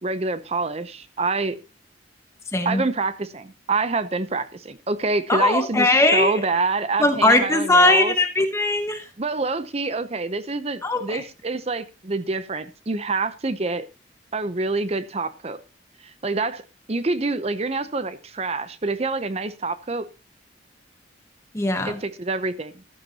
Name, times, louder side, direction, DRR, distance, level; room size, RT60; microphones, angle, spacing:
voice 1, 0.0-1.6 2.6-8.1 9.2-13.9 14.3-15.6 16.2-16.6 16.9-20.1 21.9-22.8, right 3 dB, 35° right, 13 dB, 0.7 m, -26 dB
voice 2, 2.5-2.8 5.3-6.4 7.0-9.0 10.8-11.2 21.5-22.0, left 2 dB, 15° left, 6 dB, 1.1 m, -19 dB
14.5 x 12.0 x 2.8 m, 0.29 s
head